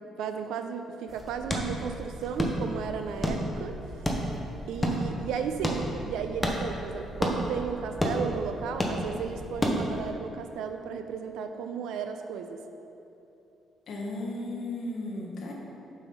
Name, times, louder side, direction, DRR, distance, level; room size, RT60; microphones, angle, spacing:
voice 1, 0.2-3.7 4.1-4.2 4.7-12.6, right 7 dB, 90° right, 7 dB, 0.6 m, -34 dB
sound 1, 1.1-10.1, equal, 10° left, 0.8 m, -32 dB
voice 2, 9.6-10.0 13.9-15.5, left 2 dB, 55° left, -2 dB, 1.4 m, -35 dB
7.1 x 5.6 x 5.8 m, 2.9 s
cardioid pair, 155°, 0 cm